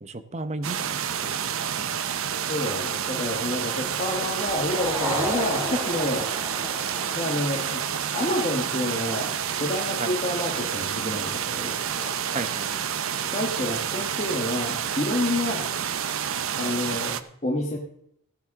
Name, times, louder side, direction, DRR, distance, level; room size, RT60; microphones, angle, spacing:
voice 1, 0.0-1.9 10.0-10.1 12.3-12.7, right 2 dB, 30° right, 10 dB, 0.8 m, -34 dB
sound 1, 0.6-17.2, right 8 dB, 75° right, 0.7 m, -29 dB
voice 2, 2.5-6.3 7.1-7.9 8.1-11.8 13.3-15.7 16.5-17.8, left 1 dB, 30° left, -1 dB, 1.3 m, -29 dB
sound 2, 4.4-9.0, equal, 10° right, 3.3 m, -34 dB
sound 3, 9.0-9.5 10.5-11.0 11.9-12.4 13.5-13.9, equal, 5° left, 3.9 m, -44 dB
15.5 x 10.5 x 3.7 m, 0.72 s
head